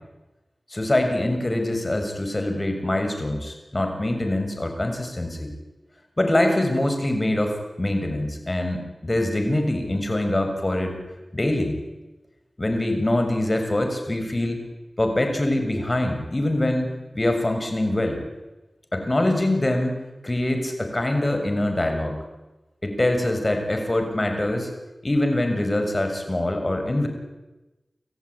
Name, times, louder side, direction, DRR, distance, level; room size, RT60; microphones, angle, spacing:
voice 1, 0.7-5.5 6.2-10.9 11.3-11.8 12.6-14.6 15.0-18.2 18.9-22.2 22.8-24.7 25.0-27.1, left 1 dB, 35° left, 5 dB, 6.7 m, -24 dB
29.0 x 14.5 x 9.8 m, 1.1 s
cardioid pair, 40°, 0 cm